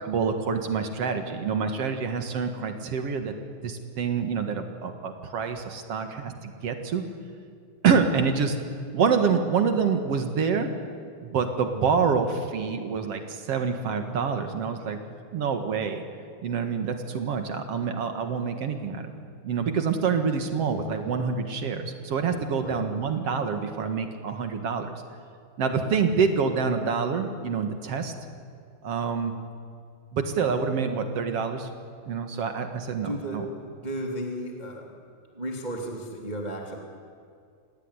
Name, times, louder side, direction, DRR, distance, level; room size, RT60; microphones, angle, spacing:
voice 1, 0.0-3.3 3.6-7.0 7.8-8.6 8.9-10.7 11.2-15.0 15.3-16.0 16.4-19.2 19.4-25.0 25.6-28.1 28.8-29.3 30.1-31.7 32.1-33.5, right 5 dB, 50° right, 6 dB, 2.1 m, -27 dB
voice 2, 33.0-33.4 33.8-34.9 35.3-36.8, right 1 dB, 15° right, 0 dB, 2.1 m, -34 dB
27.5 x 18.5 x 9.9 m, 2.3 s
omnidirectional pair, 4.5 m